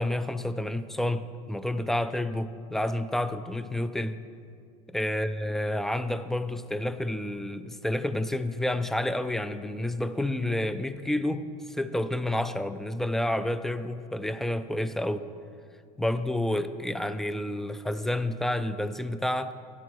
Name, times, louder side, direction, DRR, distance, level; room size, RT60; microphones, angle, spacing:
voice 1, 0.0-4.2 4.9-15.2 16.0-19.5, left 1 dB, ahead, 12 dB, 0.3 m, -29 dB
12.5 x 11.0 x 3.1 m, 2.3 s
supercardioid pair, 110°, 20 cm